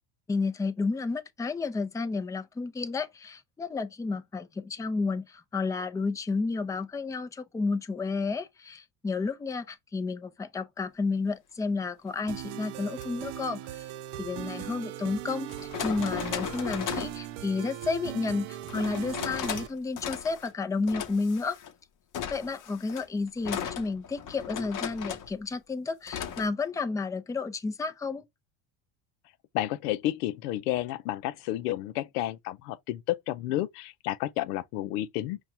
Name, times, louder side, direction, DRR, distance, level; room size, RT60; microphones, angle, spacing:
voice 1, 0.3-13.9 14.2-21.6 22.3-28.2, left 4 dB, 10° left, 0.4 m, -31 dB
sound 1, 12.3-19.7, right 12 dB, 75° right, 0.7 m, -39 dB
sound 2, 12.9-13.1 14.6-14.7 15.5-17.2 18.7-19.7 20.0-20.5 20.9-21.7 22.1-25.3 26.1-26.5, left 8 dB, 45° left, 0.8 m, -36 dB
voice 2, 29.5-35.4, left 14 dB, 90° left, 0.6 m, -31 dB
5.3 x 2.3 x 4.2 m
supercardioid pair, 95°, 44 cm